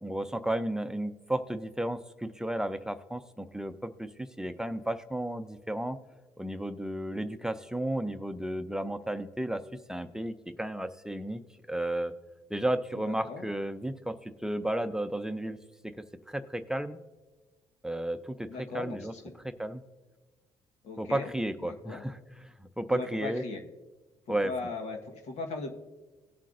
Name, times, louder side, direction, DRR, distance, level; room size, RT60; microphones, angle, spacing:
voice 1, 0.0-6.0 6.4-9.6 9.9-11.4 11.7-12.1 12.5-15.6 15.8-17.0 17.8-19.1 19.4-19.8 21.0-22.2 22.4-23.4 24.3-24.5, right 1 dB, 5° right, 9 dB, 0.5 m, -33 dB
voice 2, 12.9-13.5 18.5-19.3 20.8-21.3 21.6-22.0 22.9-23.6 24.3-25.7, left 4 dB, 75° left, 3 dB, 1.3 m, -38 dB
18.5 x 7.4 x 2.5 m, 1.2 s
cardioid pair, 85°, 12 cm